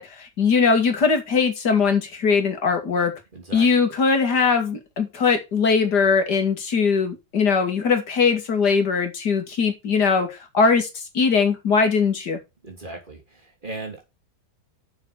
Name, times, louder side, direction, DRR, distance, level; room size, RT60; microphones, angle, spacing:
voice 1, 0.0-3.1 3.5-10.9 11.1-12.4, left 5 dB, 80° left, 2.7 m, -20 dB
voice 2, 3.3-3.7 12.6-14.0, right 2 dB, 30° right, 3.3 m, -37 dB
7.2 x 6.4 x 6.3 m
omnidirectional pair, 1.7 m